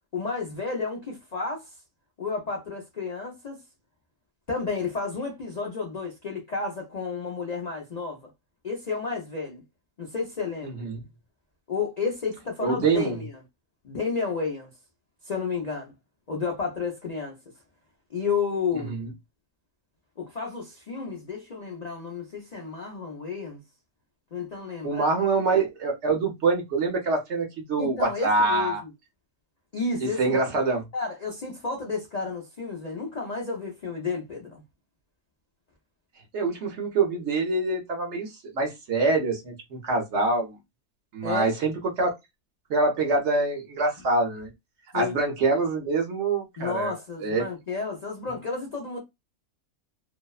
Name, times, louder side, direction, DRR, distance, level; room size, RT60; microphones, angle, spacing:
voice 1, 0.1-1.8 2.2-3.6 4.5-8.2 8.6-9.6 10.0-10.8 11.7-13.3 13.8-14.7 15.2-15.9 16.3-17.4 18.1-18.9 20.2-23.6 24.3-25.1 27.8-28.9 29.7-30.4 30.9-34.6 41.2-41.5 44.9-45.1 46.6-49.0, left 4 dB, 80° left, 0.3 m, -31 dB
voice 2, 10.6-11.0 12.6-13.2 19.0-19.1 24.8-28.8 30.0-30.8 36.3-40.6 41.1-42.1 42.7-44.5 44.9-46.9 47.2-47.4, right 3 dB, 55° right, 0.9 m, -25 dB
2.7 x 2.1 x 2.3 m
omnidirectional pair, 1.6 m